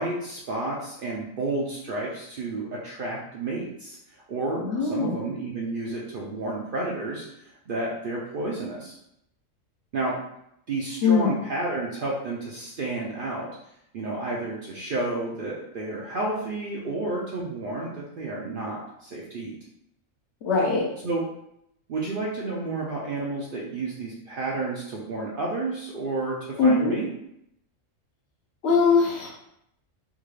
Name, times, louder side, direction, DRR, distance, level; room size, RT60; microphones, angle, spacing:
voice 1, 0.0-4.0 4.3-9.0 9.9-10.2 10.7-13.5 13.9-19.5 21.0-21.2 21.9-27.1, right 2 dB, 60° right, -3 dB, 0.6 m, -31 dB
voice 2, 4.6-5.2 11.0-11.3 20.4-20.8 26.6-26.9 28.6-29.3, left 4 dB, 65° left, -1 dB, 1.0 m, -21 dB
3.6 x 2.3 x 3.2 m, 0.78 s
omnidirectional pair, 1.4 m